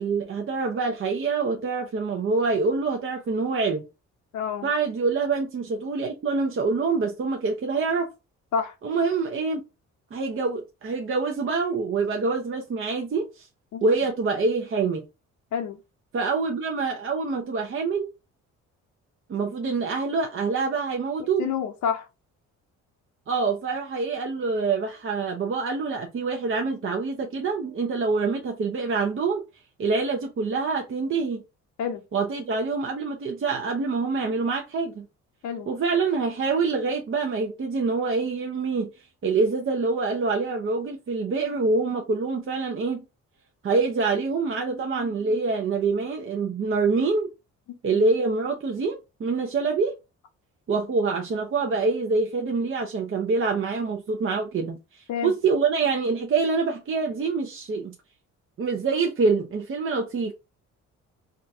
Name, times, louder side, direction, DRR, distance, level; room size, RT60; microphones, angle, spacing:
voice 1, 0.0-3.9 4.6-8.1 8.8-9.6 10.1-13.5 13.8-15.0 16.1-18.1 19.3-21.5 23.3-29.4 29.8-31.4 32.1-35.1 35.7-38.9 39.2-43.1 43.6-47.3 47.8-50.0 50.7-57.9 58.6-60.3, right 4 dB, 45° right, 0.8 m, -26 dB
voice 2, 4.3-4.7 8.5-8.7 13.7-13.8 15.5-15.8 21.4-22.1 31.8-32.0 35.4-35.7 47.9-48.0 55.1-55.3, left 7 dB, 70° left, 0.8 m, -28 dB
3.7 x 2.3 x 2.7 m
cardioid pair, 90°, 30 cm